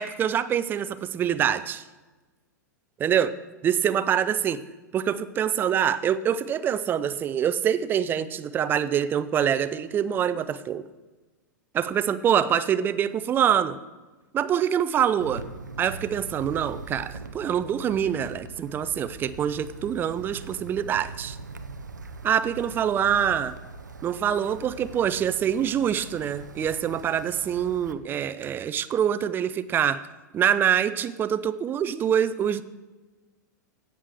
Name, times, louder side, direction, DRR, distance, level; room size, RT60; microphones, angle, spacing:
voice 1, 0.0-1.8 3.0-3.3 3.6-4.6 4.9-10.8 11.7-13.8 14.3-15.4 15.8-21.4 22.2-23.5 24.0-30.0 30.3-32.6, right 9 dB, 20° right, 14 dB, 0.5 m, -25 dB
Wind, 15.2-27.9, right 3 dB, 80° right, 0.7 m, -42 dB
16.5 x 7.4 x 3.5 m, 1.2 s
figure-of-eight pair, 95°, 10 cm